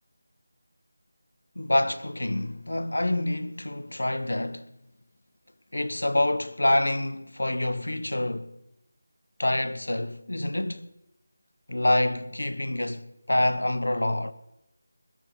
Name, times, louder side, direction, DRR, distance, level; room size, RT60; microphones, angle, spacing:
voice 1, 1.6-4.7 5.7-8.5 9.4-10.9 11.7-14.3, left 1 dB, 85° left, 1.0 m, -27 dB
21.0 x 12.0 x 3.9 m
figure-of-eight pair, 165°, 0 cm